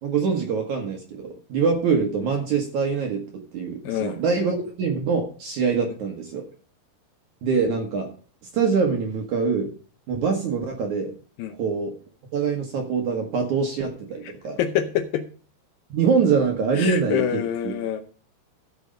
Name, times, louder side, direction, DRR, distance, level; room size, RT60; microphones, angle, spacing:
voice 1, 0.0-1.2 1.5-3.2 3.5-6.4 7.4-8.1 8.5-9.7 10.1-11.1 11.6-11.9 12.3-14.6 15.9-17.7, right 5 dB, 60° right, 2 dB, 2.4 m, -24 dB
voice 2, 3.8-4.2 11.4-11.6 14.2-14.3 14.6-15.3 16.8-18.0, left 10 dB, 75° left, 9 dB, 2.3 m, -26 dB
14.0 x 6.4 x 5.2 m, 0.40 s
omnidirectional pair, 4.6 m